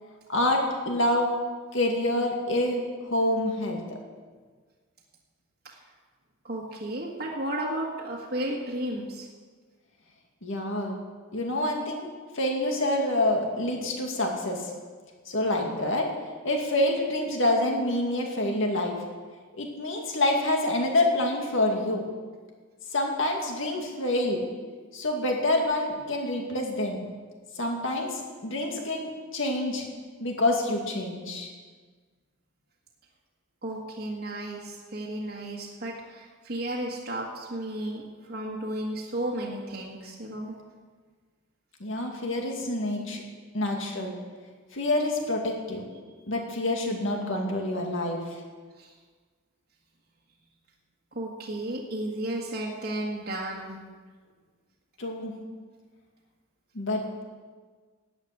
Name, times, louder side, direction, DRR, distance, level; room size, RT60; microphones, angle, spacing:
voice 1, 0.3-1.3 1.7-3.8 10.4-10.9 11.3-12.1 12.3-14.7 15.3-16.1 16.4-18.9 19.6-22.1 22.9-24.4 24.9-27.0 27.6-29.8 30.2-31.5 41.8-43.2 43.5-44.1 44.7-45.8 46.3-48.4 55.0-55.3 56.7-57.2, left 1 dB, 60° left, 1 dB, 2.3 m, -27 dB
voice 2, 6.4-9.3 33.6-40.6 48.8-48.9 51.1-53.8, right 1 dB, 45° right, -4 dB, 1.6 m, -33 dB
12.0 x 8.7 x 8.2 m, 1.5 s
head